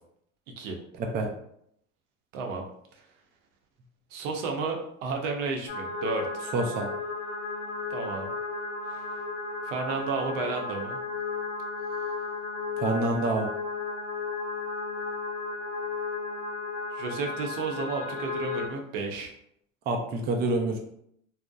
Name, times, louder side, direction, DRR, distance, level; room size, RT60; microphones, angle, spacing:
voice 1, 1.0-1.3 6.5-6.9 12.8-13.5 19.9-20.8, right 2 dB, 25° right, 2 dB, 0.4 m, -27 dB
voice 2, 2.3-2.6 4.1-6.3 7.9-8.3 8.8-9.2 9.6-11.0 16.9-19.3, right 4 dB, 70° right, 2 dB, 0.7 m, -32 dB
sound 1, 5.7-18.7, left 4 dB, 60° left, 0.6 m, -34 dB
2.6 x 2.0 x 2.3 m, 0.72 s
hypercardioid pair, 85°, 39 cm